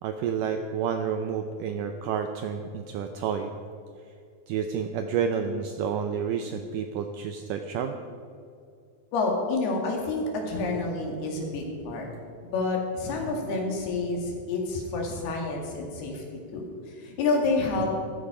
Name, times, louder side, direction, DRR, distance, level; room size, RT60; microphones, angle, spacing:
voice 1, 0.0-3.5 4.5-8.0, right 7 dB, 80° right, 6 dB, 1.9 m, -30 dB
voice 2, 9.1-12.1 12.4-17.9, left 3 dB, 80° left, 1 dB, 4.1 m, -29 dB
14.5 x 13.5 x 5.0 m, 2.4 s
omnidirectional pair, 4.5 m